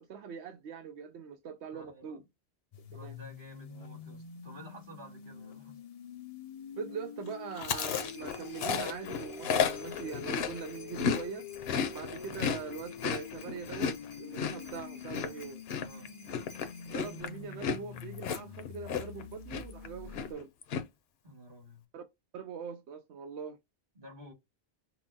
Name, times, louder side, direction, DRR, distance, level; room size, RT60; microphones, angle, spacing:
voice 1, 0.0-2.2 2.9-3.1 6.8-11.5 11.9-15.6 16.9-20.5 21.9-22.0 22.3-23.6, right 6 dB, 90° right, 0.9 m, -42 dB
voice 2, 1.7-2.2 2.9-5.8 15.8-16.1 21.2-21.8 24.0-24.3, equal, 50° right, 2.3 m, -51 dB
sound 1, 2.7-20.3, left 7 dB, 55° left, 0.4 m, -46 dB
sound 2, 7.5-17.2, left 3 dB, 85° left, 1.3 m, -55 dB
Chewing mastication, 7.6-11.2 11.5-19.2 19.5-19.9 20.1-20.8, left 6 dB, 70° left, 0.9 m, -33 dB
5.7 x 2.1 x 2.7 m
omnidirectional pair, 1.1 m